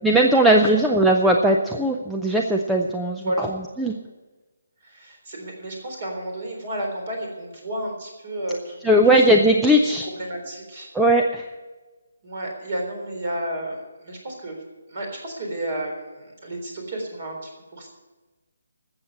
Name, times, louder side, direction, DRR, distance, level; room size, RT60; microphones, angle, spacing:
voice 1, 0.0-3.3 3.8-3.9 8.8-10.1 10.9-11.4, right 1 dB, ahead, 1 dB, 0.4 m, -18 dB
voice 2, 4.8-9.1 9.8-10.9 12.2-14.6 14.9-17.9, right 1 dB, 35° right, 2 dB, 3.8 m, -32 dB
13.0 x 8.0 x 8.9 m, 1.2 s
hypercardioid pair, 175°, 0 cm